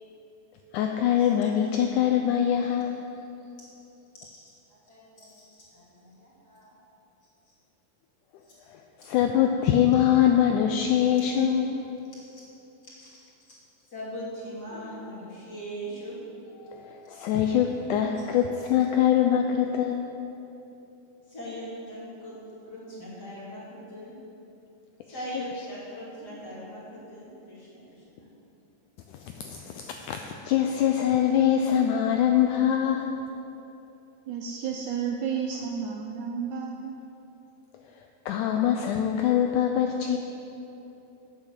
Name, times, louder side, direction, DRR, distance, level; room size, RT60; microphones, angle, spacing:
voice 1, 0.7-3.0 8.7-11.8 16.6-20.1 29.1-30.2 30.5-33.2 38.3-40.2, left 9 dB, 80° left, 4 dB, 1.8 m, -23 dB
voice 2, 4.7-6.8 12.1-12.4 13.0-13.3 13.9-16.2 21.3-22.4 22.6-24.1 25.1-28.3, equal, 30° left, -8 dB, 2.8 m, -40 dB
voice 3, 34.3-37.0, right 7 dB, 90° right, 2 dB, 1.7 m, -32 dB
8.7 x 8.5 x 6.5 m, 2.9 s
omnidirectional pair, 4.0 m